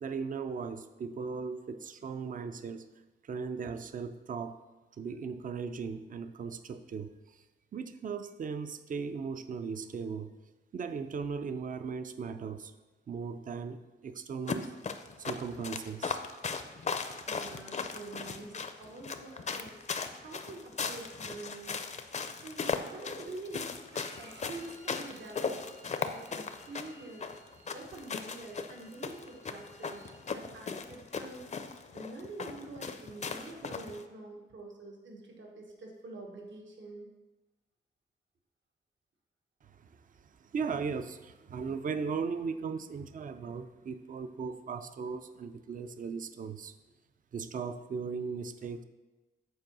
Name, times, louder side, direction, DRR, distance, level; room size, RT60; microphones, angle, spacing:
voice 1, 0.0-2.8 3.2-4.6 5.0-7.4 7.7-10.3 10.7-12.7 13.1-14.8 15.2-16.2 39.6-39.9 40.2-46.7 47.3-48.8, right 5 dB, 45° right, 10 dB, 0.4 m, -37 dB
sound 1, 14.5-34.0, left 5 dB, 35° left, 0.5 m, -38 dB
voice 2, 17.3-21.8 22.4-27.3 27.7-31.5 31.9-37.1, right 2 dB, 75° right, 0 dB, 1.3 m, -46 dB
Bowed string instrument, 23.9-30.2, right 2 dB, 90° right, 1.8 m, -58 dB
7.9 x 4.6 x 6.1 m, 1.2 s
wide cardioid pair, 140°, 20 cm